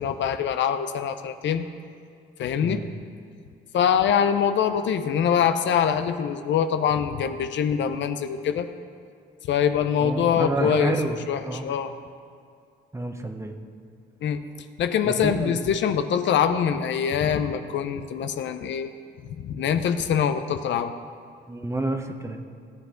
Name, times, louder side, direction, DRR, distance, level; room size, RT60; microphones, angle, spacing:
voice 1, 0.0-1.7 2.4-2.9 3.7-8.7 9.4-11.0 11.3-11.9 14.2-14.4 14.8-18.9 19.4-20.9, left 8 dB, 70° left, 9 dB, 0.6 m, -24 dB
voice 2, 10.0-11.7 12.9-13.5 15.0-15.6 21.5-22.4, right 2 dB, 15° right, 5 dB, 1.0 m, -29 dB
16.5 x 8.1 x 3.8 m, 2.3 s
cardioid pair, 90°, 20 cm